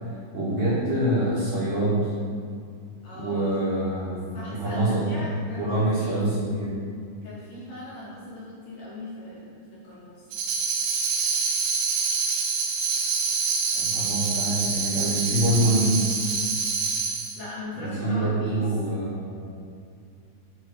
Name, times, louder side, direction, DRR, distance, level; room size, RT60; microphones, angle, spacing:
voice 1, 0.3-2.1 3.1-6.8 13.7-16.2 17.7-19.5, right 1 dB, 55° right, -10 dB, 3.7 m, -25 dB
voice 2, 3.0-3.8 4.3-6.3 7.2-10.3 17.4-18.7, left 1 dB, 60° left, -9 dB, 2.9 m, -39 dB
Tambourine, 10.3-17.4, right 5 dB, 90° right, 3.3 m, -26 dB
10.5 x 3.8 x 5.3 m, 2.3 s
omnidirectional pair, 5.6 m